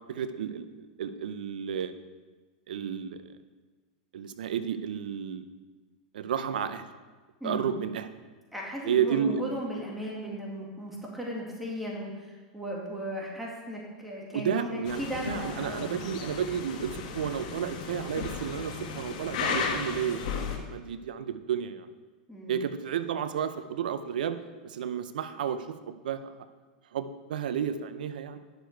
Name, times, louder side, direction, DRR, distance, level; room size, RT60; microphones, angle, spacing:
voice 1, 0.1-1.9 2.7-3.2 4.1-5.5 6.1-6.9 7.4-8.1 8.9-9.5 14.3-21.9 22.5-24.4 24.6-26.5 26.9-28.4, right 8 dB, 80° right, 12 dB, 0.6 m, -32 dB
voice 2, 8.5-15.9 22.3-22.6, equal, ahead, -3 dB, 2.1 m, -36 dB
sound 1, 14.9-20.6, left 6 dB, 65° left, 1.4 m, -35 dB
10.5 x 6.6 x 4.6 m, 1.3 s
hypercardioid pair, 110°, 5 cm